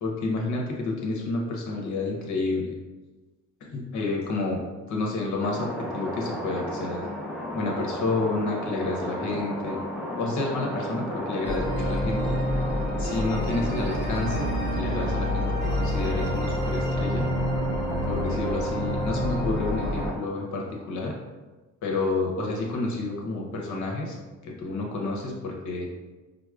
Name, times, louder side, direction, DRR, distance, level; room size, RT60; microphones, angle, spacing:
voice 1, 0.0-2.7 3.6-4.6 4.9-7.0 7.5-9.8 10.2-12.4 13.0-15.5 15.7-17.3 18.0-21.1 21.8-24.2 24.4-25.9, left 3 dB, 70° left, 0 dB, 0.8 m, -30 dB
sound 1, 5.4-20.2, equal, ahead, 0.5 m, -34 dB
sound 2, 11.4-20.1, equal, 35° right, 0.7 m, -28 dB
4.6 x 2.0 x 2.3 m, 1.2 s
cardioid pair, 90°, 30 cm